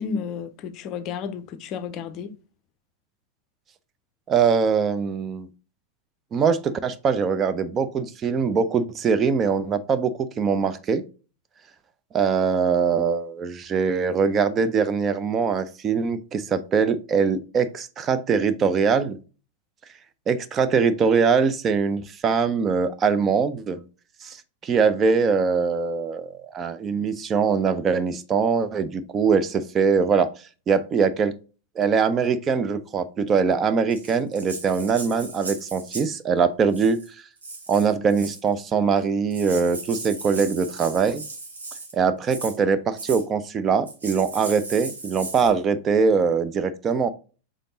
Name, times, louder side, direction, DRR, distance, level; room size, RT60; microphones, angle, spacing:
voice 1, 0.0-2.3, left 6 dB, 40° left, 0.5 m, -32 dB
voice 2, 4.3-5.5 6.3-11.0 12.1-19.2 20.3-23.8 24.2-24.4 24.6-30.3 30.7-31.3 31.8-37.0 37.7-41.2 41.9-47.1, right 5 dB, 25° right, 0.4 m, -22 dB
Rattle (instrument), 33.9-36.2 36.7-37.1 37.4-38.5 39.0-39.1 39.3-41.9 42.3-42.6 43.0-43.2 43.9-45.5, right 3 dB, 75° right, 1.5 m, -37 dB
5.1 x 3.7 x 2.7 m
figure-of-eight pair, 90°, 0 cm